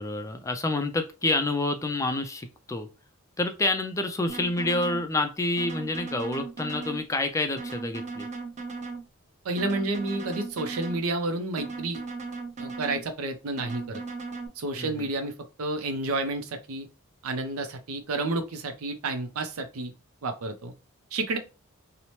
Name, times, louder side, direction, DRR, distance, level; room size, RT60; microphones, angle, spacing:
voice 1, 0.0-2.9 3.4-8.3 14.8-15.1, left 2 dB, 15° left, 7 dB, 0.3 m, -28 dB
sound 1, 4.3-5.0 5.6-7.0 7.6-9.0 9.6-11.0 11.6-13.0 13.6-14.5, right 4 dB, 35° right, 0.6 m, -37 dB
voice 2, 9.4-12.0 12.6-14.0 14.6-15.3 15.6-16.9 17.2-19.9 20.2-20.7 21.1-21.4, right 2 dB, 85° right, 6 dB, 0.5 m, -30 dB
2.8 x 2.0 x 3.0 m, 0.29 s
head